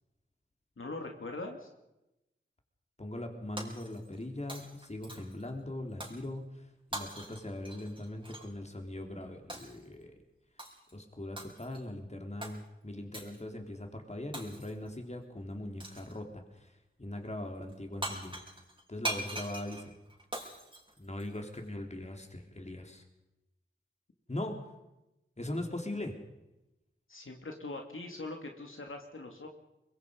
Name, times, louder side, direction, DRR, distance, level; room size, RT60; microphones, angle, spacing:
voice 1, 0.8-1.7 27.1-29.5, left 2 dB, 75° left, 2 dB, 2.8 m, -42 dB
voice 2, 3.0-6.7 6.9-10.1 10.9-16.7 17.0-18.4 18.9-19.9 21.0-23.0 24.3-24.6 25.4-26.2, left 1 dB, 30° left, 3 dB, 3.9 m, -40 dB
Shatter, 3.6-4.2 4.5-5.4 6.0-6.3 6.9-8.5 9.5-9.8 10.6-10.9 11.4-11.8 12.4-12.6 13.1-13.4 14.3-14.9 15.8-16.2 17.7-17.8 18.0-21.6, right 1 dB, 25° right, 4.9 m, -42 dB
24.0 x 22.5 x 5.4 m, 0.94 s
wide cardioid pair, 60°, 21 cm